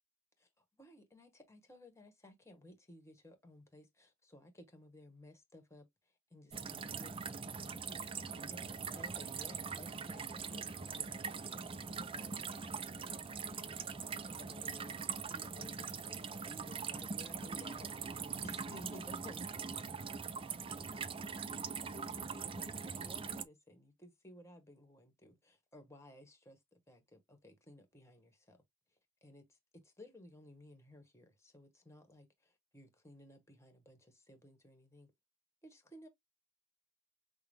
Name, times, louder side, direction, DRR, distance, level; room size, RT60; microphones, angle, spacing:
voice 1, 0.4-5.9 6.3-7.1 7.5-13.7 14.1-15.0 15.3-19.5 21.7-28.6 29.2-35.1 35.6-36.1, left 1 dB, 15° left, 1.2 m, -57 dB
sound 1, 6.5-23.4, right 5 dB, 30° right, 0.4 m, -42 dB
5.8 x 2.0 x 3.3 m
head